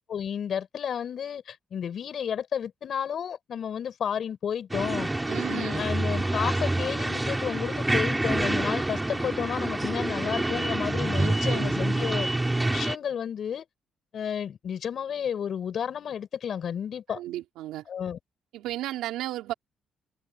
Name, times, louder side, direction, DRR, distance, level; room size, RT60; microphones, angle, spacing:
voice 1, 0.0-5.1 5.5-12.3 12.7-13.7 14.1-17.2 17.9-18.2, left 8 dB, 60° left, 6.1 m, -32 dB
sound 1, 4.7-13.0, right 2 dB, 15° right, 4.7 m, -27 dB
voice 2, 5.3-5.8 11.2-11.7 17.1-17.8 18.5-19.5, right 14 dB, 90° right, 4.4 m, -34 dB
supercardioid pair, 70°, 0 cm